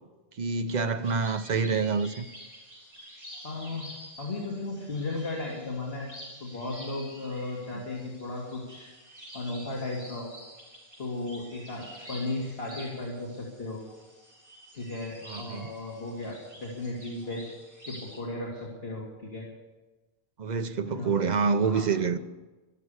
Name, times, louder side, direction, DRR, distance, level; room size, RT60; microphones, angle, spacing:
voice 1, 0.4-2.3 15.3-15.7 20.4-22.2, right 5 dB, 50° right, 0.8 m, -27 dB
sound 1, 1.0-18.2, equal, 15° right, 5.1 m, -48 dB
voice 2, 3.4-3.9 4.2-6.1 6.4-8.9 9.3-10.3 11.0-13.8 14.7-17.5 17.8-19.5 20.8-21.2 21.6-21.9, left 2 dB, 75° left, 2.6 m, -35 dB
13.0 x 12.5 x 8.0 m
omnidirectional pair, 1.0 m